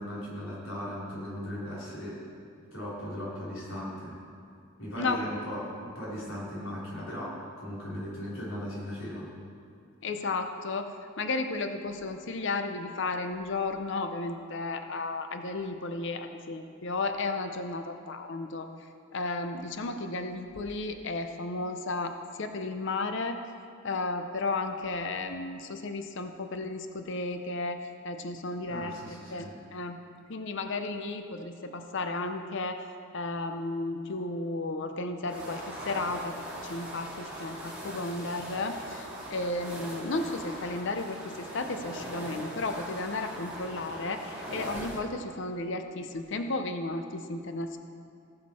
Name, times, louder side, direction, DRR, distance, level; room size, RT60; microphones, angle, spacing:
voice 1, 0.0-2.2 2.7-4.2 4.8-9.3 28.7-29.5, equal, 80° left, -7 dB, 3.4 m, -38 dB
voice 2, 10.0-18.7 19.1-23.4 23.8-29.0 29.3-30.0 30.3-32.9 33.1-47.8, left 3 dB, 60° left, 7 dB, 0.6 m, -33 dB
sound 1, 35.2-45.0, right 1 dB, 5° right, 2.1 m, -41 dB
18.5 x 6.6 x 4.3 m, 2.4 s
head